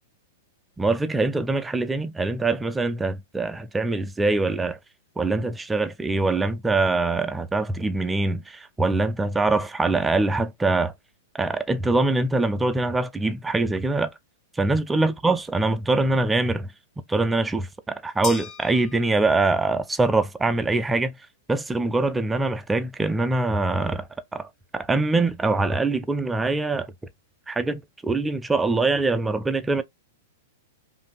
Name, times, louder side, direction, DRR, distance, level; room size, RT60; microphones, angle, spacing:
voice 1, 0.8-4.8 5.2-10.9 11.3-14.1 14.6-16.7 17.1-21.1 21.5-24.1 24.3-24.5 24.7-26.9 27.5-29.8, right 3 dB, 10° right, 0.4 m, -23 dB
sound 1, 18.2-19.7, left 9 dB, 35° left, 0.6 m, -38 dB
5.0 x 2.6 x 2.3 m
hypercardioid pair, 110°, 0 cm